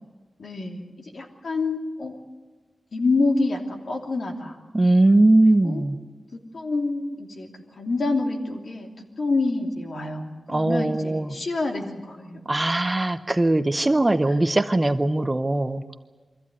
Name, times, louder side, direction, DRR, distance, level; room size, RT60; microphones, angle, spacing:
voice 1, 0.4-2.2 2.9-4.6 5.4-5.8 6.3-7.5 7.8-12.5 14.3-14.4, left 3 dB, 60° left, 2 dB, 3.0 m, -27 dB
voice 2, 4.7-6.0 10.5-11.4 12.5-15.8, right 2 dB, 20° right, 10 dB, 0.8 m, -20 dB
23.5 x 15.0 x 9.6 m, 1.3 s
wide cardioid pair, 120°, 0 cm